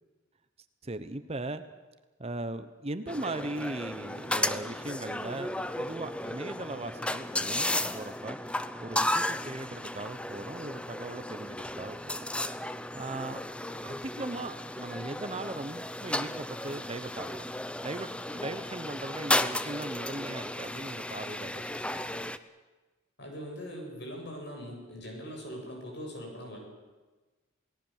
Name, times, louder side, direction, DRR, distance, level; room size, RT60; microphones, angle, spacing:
voice 1, 0.8-1.6 2.2-8.4 8.8-12.2 12.9-13.4 13.8-17.4 17.8-22.2, right 2 dB, 30° right, 11 dB, 1.0 m, -39 dB
sound 1, 3.1-22.4, left 1 dB, 5° left, 0.7 m, -34 dB
voice 2, 23.2-26.6, equal, 60° left, 1 dB, 7.8 m, -41 dB
28.5 x 18.0 x 7.4 m, 1.2 s
head